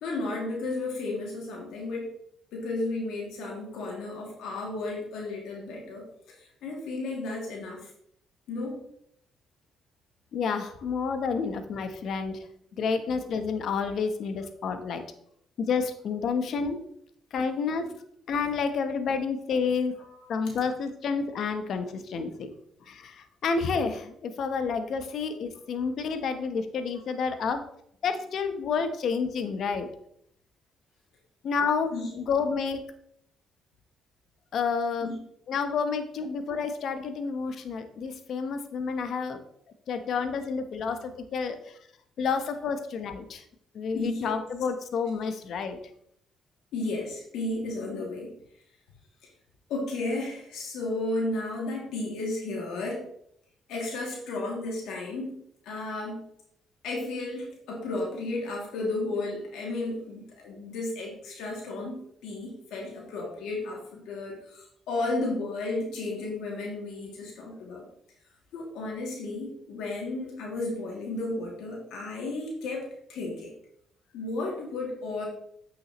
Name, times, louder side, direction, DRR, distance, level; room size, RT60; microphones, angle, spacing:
voice 1, 0.0-2.1 2.5-6.1 6.6-7.8 8.5-8.8 11.3-11.4 31.9-32.1 35.0-35.2 43.9-44.3 46.7-48.3 49.7-53.1 53.7-56.2 56.8-67.9 68.5-73.5 74.1-75.3, left 2 dB, 85° left, -2 dB, 2.4 m, -33 dB
voice 2, 10.3-12.5 12.8-15.0 15.6-16.8 17.3-17.9 18.3-20.0 20.3-22.5 22.9-27.6 28.0-29.9 31.4-32.8 34.5-35.1 35.5-39.4 39.9-41.8 42.2-43.4 43.7-45.8, left 5 dB, 65° left, 8 dB, 0.9 m, -29 dB
8.5 x 6.3 x 3.0 m, 0.70 s
cardioid pair, 90°, 0 cm